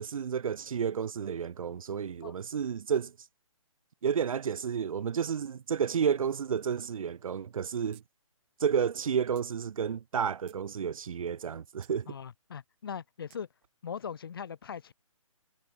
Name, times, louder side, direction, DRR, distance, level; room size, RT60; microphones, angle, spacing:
voice 1, 0.0-3.1 4.0-8.0 8.6-12.2, right 7 dB, 75° right, 0.6 m, -31 dB
sound 1, 7.9-8.1 8.4-8.5 9.4-9.5 10.1-10.7 11.8-12.0 13.3-13.4, right 23 dB, 20° right, 2.4 m, -59 dB
voice 2, 12.1-13.5 13.8-14.9, left 7 dB, 40° left, 0.6 m, -40 dB
hypercardioid pair, 170°, 18 cm